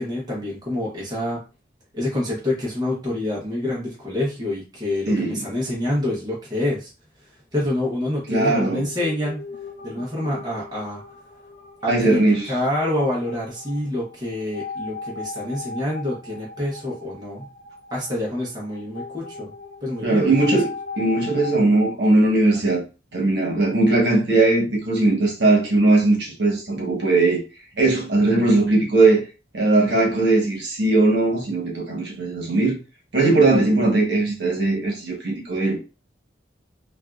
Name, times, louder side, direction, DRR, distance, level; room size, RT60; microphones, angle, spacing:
voice 1, 0.0-1.4 1.9-6.9 7.5-9.4 9.8-11.0 11.8-12.2 12.5-17.5 17.9-19.5 19.8-20.6 22.5-22.6, left 1 dB, 20° right, 0.8 m, -27 dB
voice 2, 5.1-5.4 8.3-8.8 11.9-12.5 20.0-20.7 21.0-22.8 23.1-27.4 27.8-29.2 29.5-32.8 33.1-35.8, right 2 dB, 65° right, 1.1 m, -19 dB
sound 1, 8.3-21.6, left 4 dB, 40° left, 0.6 m, -38 dB
3.3 x 2.4 x 2.3 m
head